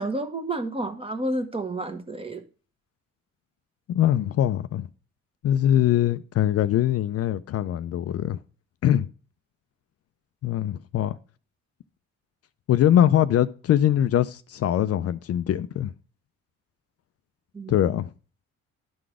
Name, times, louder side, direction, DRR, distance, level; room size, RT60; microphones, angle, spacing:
voice 1, 0.0-2.4 17.5-17.8, right 2 dB, 20° right, 1.2 m, -30 dB
voice 2, 3.9-4.9 5.4-8.4 8.8-9.1 10.4-11.2 12.7-15.9 17.7-18.1, left 11 dB, 55° left, 0.4 m, -22 dB
11.5 x 3.9 x 4.8 m
cardioid pair, 90°, 30 cm